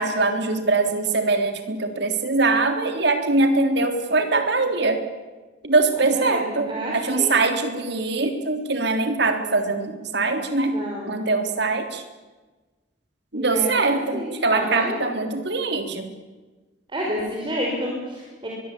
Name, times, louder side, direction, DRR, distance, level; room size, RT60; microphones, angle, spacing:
voice 1, 0.0-5.0 5.6-10.8 11.1-12.0 13.3-16.1, right 3 dB, 65° right, 6 dB, 3.6 m, -22 dB
voice 2, 6.1-7.3 10.7-11.2 13.3-15.0 16.9-18.5, equal, 25° right, -2 dB, 5.4 m, -29 dB
23.5 x 22.5 x 8.6 m, 1.2 s
head